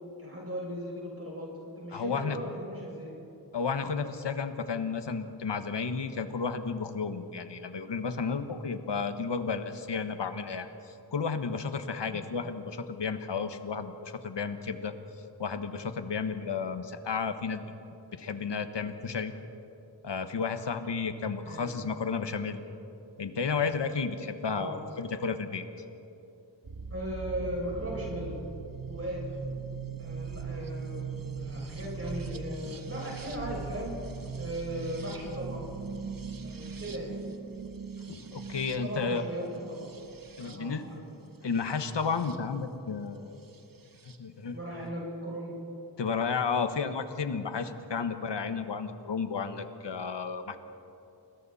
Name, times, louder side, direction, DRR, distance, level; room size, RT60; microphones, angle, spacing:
voice 1, 0.2-1.5 1.8-3.1 12.1-12.2 21.4-21.8 24.5-24.8 26.9-28.4 28.8-29.2 30.0-33.9 34.4-35.7 36.4-37.2 38.8-39.9 40.4-41.0 44.5-45.6, right 1 dB, 30° right, -4 dB, 6.7 m, -37 dB
voice 2, 1.9-2.4 3.5-14.9 15.4-17.6 18.1-19.3 20.0-22.6 23.2-25.6 38.1-39.2 40.4-40.8 41.4-43.4 44.2-44.6 46.0-50.6, left 5 dB, 70° left, 8 dB, 1.4 m, -32 dB
sound 1, 26.6-42.4 43.5-44.2, right 5 dB, 50° right, 1.4 m, -40 dB
29.5 x 21.5 x 4.2 m, 2.8 s
wide cardioid pair, 75°, 44 cm